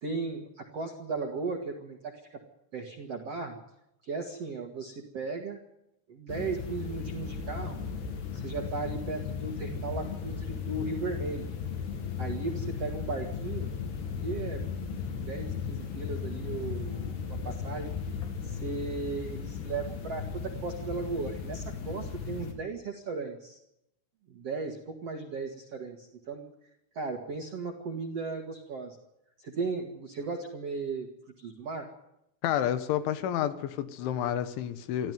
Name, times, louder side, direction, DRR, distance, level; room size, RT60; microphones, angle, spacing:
voice 1, 0.0-2.1 2.7-3.6 4.0-5.6 6.1-7.8 8.3-11.5 12.2-13.7 14.1-14.7 15.2-17.9 18.4-23.6 24.3-26.5 26.9-29.0 29.4-31.1 31.4-31.9, right 4 dB, 60° right, 1.7 m, -36 dB
sound 1, 6.3-22.5, left 6 dB, 65° left, 4.4 m, -36 dB
voice 2, 32.4-35.1, left 10 dB, 85° left, 3.7 m, -30 dB
25.0 x 14.5 x 9.4 m
omnidirectional pair, 5.3 m